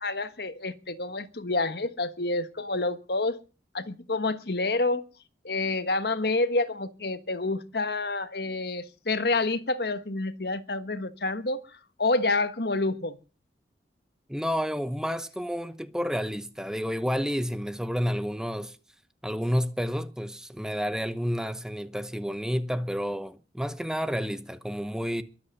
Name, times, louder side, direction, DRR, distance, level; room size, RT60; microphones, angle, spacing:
voice 1, 0.0-3.4 3.7-5.0 5.4-11.7 12.0-13.2, left 2 dB, 60° left, 1.4 m, -28 dB
voice 2, 14.3-18.8 19.2-25.2, equal, 5° right, 0.9 m, -30 dB
23.0 x 8.5 x 6.7 m
head